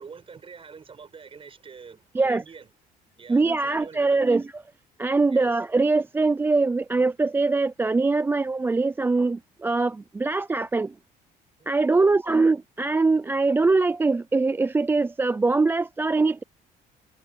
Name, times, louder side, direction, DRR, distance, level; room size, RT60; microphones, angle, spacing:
voice 1, 0.0-2.7 3.2-4.5 5.3-5.6 11.6-12.2, right 5 dB, 35° right, 6.5 m, -45 dB
voice 2, 3.3-4.4 5.0-10.9 11.7-16.4, right 3 dB, 15° right, 0.3 m, -22 dB
cardioid pair, 110°, 17 cm